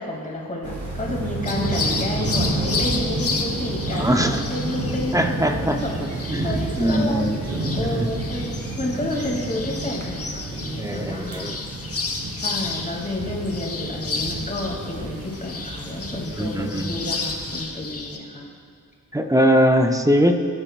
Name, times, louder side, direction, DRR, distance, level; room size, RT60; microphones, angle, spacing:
voice 1, 0.0-11.6 12.4-18.5, left 1 dB, 25° left, -2 dB, 2.6 m, -30 dB
sound 1, 0.6-17.6, right 2 dB, 50° right, 2.5 m, -30 dB
sound 2, 1.5-18.2, left 4 dB, 45° left, 1.1 m, -32 dB
voice 2, 3.9-4.4 5.1-7.4 7.8-8.1 10.8-11.6 16.3-16.9 19.1-20.5, equal, 10° right, 4 dB, 0.7 m, -22 dB
20.0 x 8.8 x 2.5 m, 2.1 s
wide cardioid pair, 95°, 34 cm